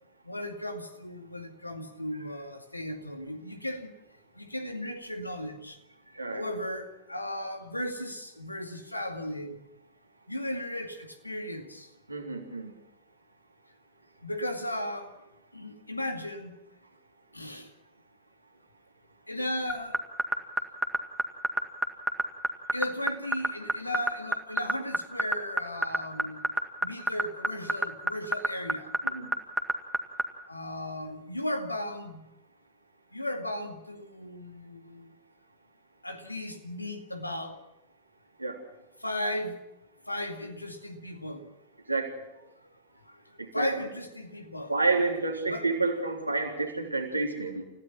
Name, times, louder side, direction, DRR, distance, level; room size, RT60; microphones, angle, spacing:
voice 1, 0.2-3.9 4.4-5.8 6.3-9.6 10.3-11.9 14.2-15.2 15.5-16.5 17.3-17.7 19.3-20.0 22.7-26.4 26.8-28.9 30.5-32.3 33.1-35.1 36.0-37.6 39.0-39.6 40.1-41.4 43.1-43.2 43.5-44.7 45.5-45.7, left 1 dB, 85° left, 2.1 m, -36 dB
voice 2, 12.1-12.7 29.0-29.3 38.4-38.6 41.9-42.2 43.4-43.7 44.7-47.6, right 3 dB, 85° right, 3.4 m, -29 dB
sound 1, 19.7-30.2, right 2 dB, 5° right, 2.0 m, -25 dB
30.0 x 16.0 x 5.9 m
figure-of-eight pair, 90°, 0 cm